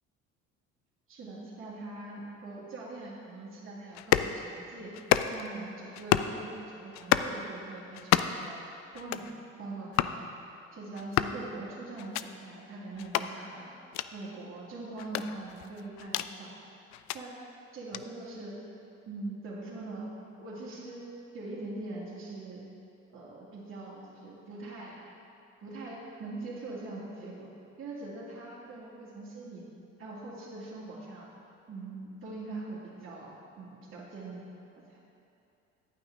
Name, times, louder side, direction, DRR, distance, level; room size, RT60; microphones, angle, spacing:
voice 1, 1.1-5.0 5.3-8.6 8.9-9.3 9.6-10.2 10.7-13.7 14.1-16.8 17.1-17.4 17.7-18.6 19.1-20.1 20.4-22.6 23.1-25.0 25.6-27.5 27.8-29.6 30.0-31.3 31.7-34.5 34.9-35.0, right 2 dB, 35° right, -7 dB, 2.2 m, -42 dB
sound 1, 4.0-4.3 4.9-5.5 5.9-6.4 6.9-7.3 7.9-8.5 8.9-9.3 9.9-10.2 10.9-11.4 12.0-12.3 13.0-13.3 13.9-14.1 15.0-16.3 16.9-17.2 17.9-18.0, left 13 dB, 50° left, 0.4 m, -29 dB
11.0 x 9.0 x 3.7 m, 2.6 s
figure-of-eight pair, 55°, 38 cm